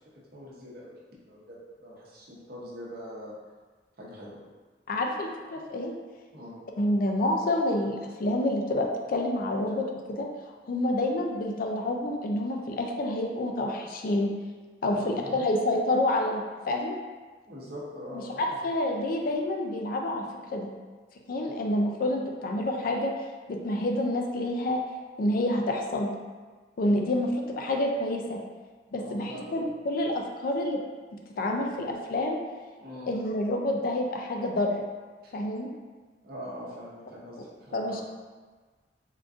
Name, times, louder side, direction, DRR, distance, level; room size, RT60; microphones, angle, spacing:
voice 1, 0.3-0.9 1.3-3.3 4.0-4.4 6.3-6.6 14.9-15.5 17.5-18.7 28.9-29.7 32.8-33.1 35.2-35.3 36.2-38.0, equal, 55° right, -5 dB, 0.7 m, -42 dB
voice 2, 4.9-5.9 6.8-10.3 10.7-14.3 14.8-16.9 18.1-20.2 20.5-20.7 21.3-23.1 23.5-24.8 25.2-26.1 26.8-27.3 27.6-28.4 28.9-30.8 31.4-32.4 33.1-34.9 35.3-35.7 37.7-38.0, left 1 dB, 50° left, 2 dB, 0.3 m, -28 dB
3.6 x 2.5 x 2.4 m, 1.4 s
head